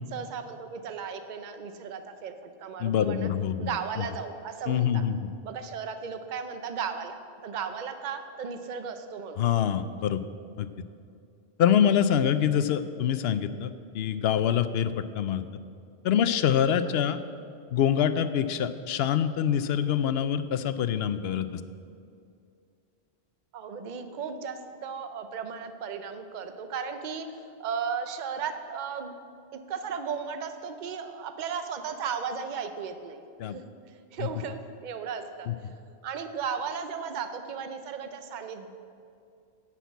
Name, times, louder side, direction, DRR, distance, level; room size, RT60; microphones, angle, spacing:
voice 1, 0.1-3.3 3.6-5.0 5.4-9.5 16.8-16.9 23.5-29.1 29.5-33.2 33.5-33.7 34.1-35.5 36.0-38.7, right 6 dB, 50° right, 8 dB, 0.7 m, -35 dB
voice 2, 2.8-4.0 4.7-5.3 9.4-10.2 10.6-10.7 11.6-13.7 13.9-15.4 16.0-17.2 17.7-21.6 33.4-33.6 34.2-34.3 35.5-35.6, left 9 dB, 70° left, 12 dB, 0.8 m, -25 dB
10.5 x 5.9 x 8.1 m, 2.4 s
omnidirectional pair, 1.1 m